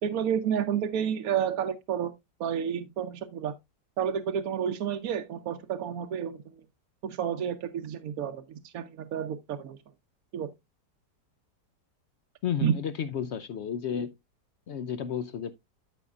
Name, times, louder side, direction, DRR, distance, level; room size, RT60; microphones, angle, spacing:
voice 1, 0.0-2.1 2.4-3.5 4.0-6.6 7.0-9.8 10.3-10.5 12.6-12.7, right 8 dB, 65° right, 1.0 m, -30 dB
voice 2, 12.4-14.1 14.7-15.5, left 8 dB, 80° left, 0.6 m, -32 dB
12.5 x 5.4 x 2.4 m
omnidirectional pair, 1.8 m